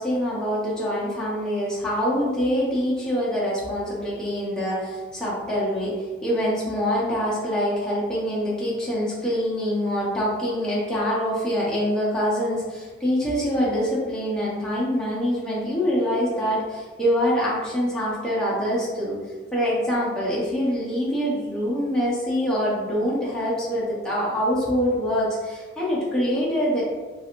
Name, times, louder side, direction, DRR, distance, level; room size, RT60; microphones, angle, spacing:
voice 1, 0.0-19.2 19.5-26.8, equal, 5° left, -8 dB, 0.7 m, -25 dB
3.0 x 2.4 x 2.9 m, 1.4 s
head